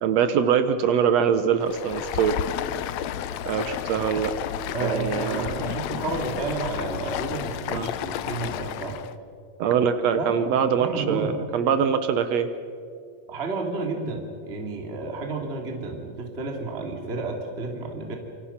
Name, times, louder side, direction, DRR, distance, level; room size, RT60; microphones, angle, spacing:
voice 1, 0.0-2.4 3.5-4.3 4.8-5.5 7.7-7.9 9.6-12.5, right 7 dB, 70° right, 10 dB, 1.6 m, -23 dB
Stream, 1.6-9.1, left 11 dB, 85° left, 1.5 m, -32 dB
voice 2, 4.7-9.0 10.2-10.4 10.8-11.4 13.3-18.2, right 3 dB, 20° right, 1 dB, 2.5 m, -31 dB
28.0 x 25.0 x 5.8 m, 2.4 s
omnidirectional pair, 4.1 m